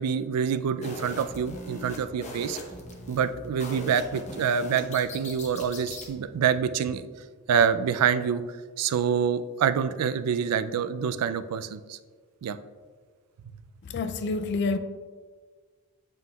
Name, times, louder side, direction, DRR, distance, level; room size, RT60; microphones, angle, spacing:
voice 1, 0.0-2.6 3.1-7.1 7.5-12.0 12.4-12.6, right 7 dB, 85° right, 0.3 m, -26 dB
sound 1, 0.8-6.1, left 1 dB, 30° left, 0.9 m, -40 dB
voice 2, 13.9-14.8, left 3 dB, 50° left, 0.3 m, -27 dB
7.5 x 5.6 x 2.3 m
head